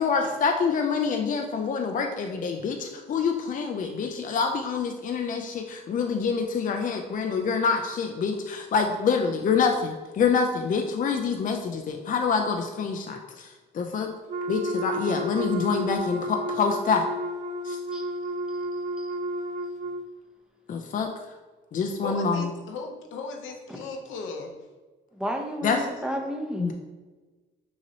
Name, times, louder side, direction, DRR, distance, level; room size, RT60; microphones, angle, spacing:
voice 1, 0.0-14.1 14.5-17.1 17.6-17.8 20.7-21.1 21.7-22.5 25.6-25.9 26.6-26.7, left 5 dB, 40° left, 4 dB, 0.4 m, -26 dB
Wind instrument woodwind instrument, 14.3-20.1, equal, 40° right, 0.4 m, -32 dB
voice 2, 22.0-24.5, left 4 dB, 80° left, 3 dB, 0.8 m, -36 dB
voice 3, 25.1-26.7, equal, 5° right, 2 dB, 0.7 m, -32 dB
6.0 x 2.8 x 2.8 m, 1.3 s
cardioid pair, 90°, 20 cm